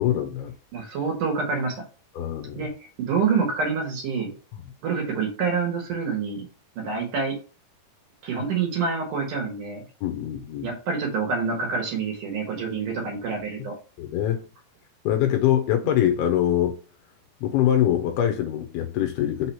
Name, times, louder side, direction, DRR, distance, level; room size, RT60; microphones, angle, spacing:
voice 1, 0.0-0.5 2.2-2.7 10.0-10.7 13.6-13.7 14.0-14.5 15.1-16.8 17.4-19.5, left 11 dB, 80° left, 2.4 m, -23 dB
voice 2, 0.7-1.8 2.6-2.7 3.0-4.3 4.8-6.5 6.8-7.4 8.2-9.8 10.6-13.7, right 5 dB, 60° right, 2.6 m, -27 dB
6.1 x 2.9 x 5.5 m
omnidirectional pair, 4.9 m